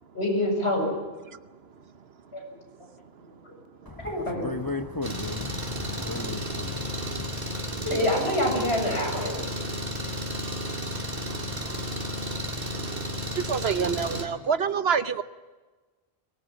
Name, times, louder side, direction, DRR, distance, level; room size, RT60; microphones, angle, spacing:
voice 1, 0.1-0.9 2.3-2.5 3.4-3.5 4.0-4.5 5.9-6.3 7.9-9.4, left 1 dB, 80° left, 7.1 m, -27 dB
voice 2, 3.9-7.3, left 2 dB, 20° left, 0.9 m, -35 dB
Engine, 5.0-14.2, equal, 40° right, 2.6 m, -33 dB
voice 3, 13.5-15.2, right 6 dB, 75° right, 1.2 m, -26 dB
23.0 x 19.5 x 8.9 m
omnidirectional pair, 1.1 m